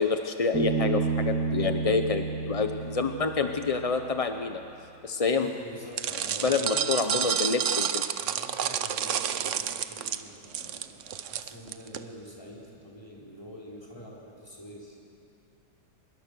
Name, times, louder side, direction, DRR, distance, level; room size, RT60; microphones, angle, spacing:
voice 1, 0.0-4.6 5.0-5.5 6.4-8.0, left 4 dB, 40° left, 7 dB, 0.5 m, -27 dB
Bass guitar, 0.5-4.0, right 4 dB, 85° right, 2.8 m, -30 dB
voice 2, 5.3-7.4 8.2-15.0, equal, 15° left, -4 dB, 4.6 m, -46 dB
sound 1, 6.0-12.0, right 9 dB, 55° right, 0.9 m, -30 dB
24.0 x 21.5 x 6.8 m, 2.6 s
omnidirectional pair, 1.8 m